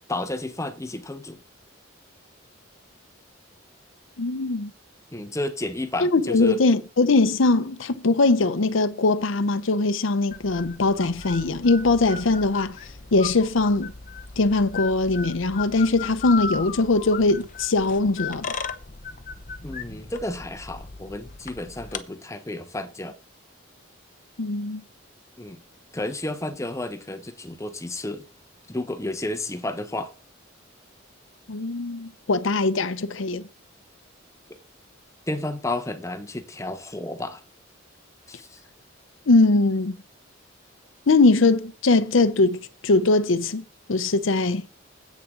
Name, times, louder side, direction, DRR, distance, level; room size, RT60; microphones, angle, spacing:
voice 1, 0.1-1.4 5.1-6.6 19.6-23.1 25.4-25.6 25.9-28.2 28.7-30.1 35.3-37.4 38.3-38.6, left 2 dB, 15° left, 1.0 m, -32 dB
voice 2, 4.2-4.7 6.0-12.8 13.1-13.9 14.4-18.5 24.4-24.8 31.5-33.4 39.3-40.0 41.1-43.6 43.9-44.6, left 3 dB, 80° left, 0.7 m, -21 dB
sound 1, 10.3-22.0, left 5 dB, 40° left, 0.8 m, -37 dB
10.5 x 8.4 x 3.8 m
head